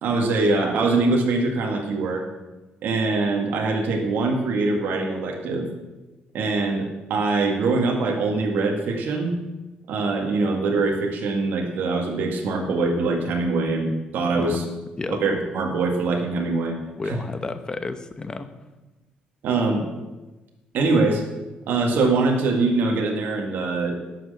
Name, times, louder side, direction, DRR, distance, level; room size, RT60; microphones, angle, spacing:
voice 1, 0.0-2.2 2.8-5.7 6.3-9.3 9.9-14.6 15.1-16.8 17.0-17.2 19.4-19.8 20.7-21.2 21.7-24.0, right 3 dB, 75° right, 1 dB, 1.9 m, -23 dB
voice 2, 14.3-14.7 15.0-15.2 17.0-18.5, left 3 dB, 25° left, 10 dB, 0.9 m, -31 dB
11.0 x 6.3 x 7.7 m, 1.1 s
cardioid pair, 115°, 3 cm